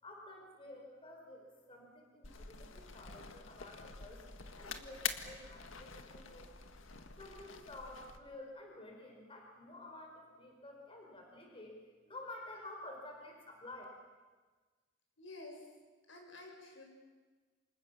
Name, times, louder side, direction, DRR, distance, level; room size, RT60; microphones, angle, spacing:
voice 1, 0.0-6.5 6.8-13.8, left 2 dB, 30° left, 1 dB, 5.0 m, -51 dB
sound 1, 2.2-8.2, left 6 dB, 90° left, 1.9 m, -46 dB
voice 2, 15.2-15.7 16.1-16.8, left 2 dB, 75° left, 2 dB, 7.2 m, -51 dB
29.0 x 26.5 x 7.3 m, 1.4 s
head